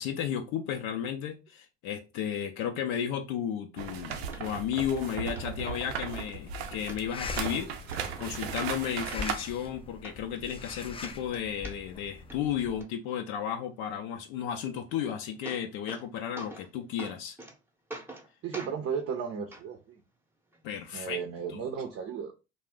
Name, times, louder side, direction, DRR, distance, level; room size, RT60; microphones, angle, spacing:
voice 1, 0.0-7.7 8.2-17.4 20.6-21.2 21.5-21.6, left 9 dB, 65° left, 0.5 m, -33 dB
sound 1, 3.8-9.3, right 7 dB, 90° right, 0.5 m, -36 dB
sound 2, 4.3-4.4 4.9-5.0 5.4-5.5 5.9-6.4 6.9-7.5 7.9-8.0 8.4-9.2 9.7-9.8 10.0-10.7 11.0-12.0 12.3-12.9 14.9-15.0 15.2-16.1 16.4-16.7 17.0-17.5 17.9-18.3 18.5-18.8 19.5-19.6 20.5-20.6, right 1 dB, 5° right, 0.7 m, -44 dB
sound 3, 6.3-12.8, left 4 dB, 20° left, 0.5 m, -43 dB
voice 2, 18.4-20.0 20.9-22.3, right 7 dB, 45° right, 0.6 m, -34 dB
2.4 x 2.1 x 3.5 m
hypercardioid pair, 65°, 31 cm